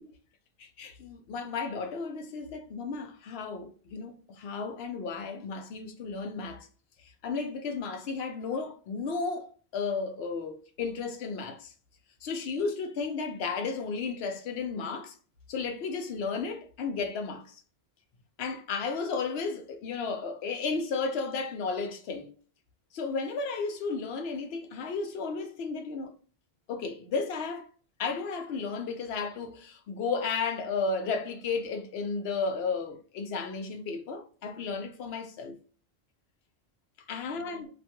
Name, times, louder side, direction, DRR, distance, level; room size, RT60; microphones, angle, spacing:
voice 1, 0.6-6.7 7.0-11.7 12.2-15.2 15.5-17.6 18.4-22.3 22.9-26.1 26.7-27.7 28.0-35.6 37.1-37.7, left 4 dB, 75° left, 0.9 m, -33 dB
2.5 x 2.3 x 2.7 m
omnidirectional pair, 1.1 m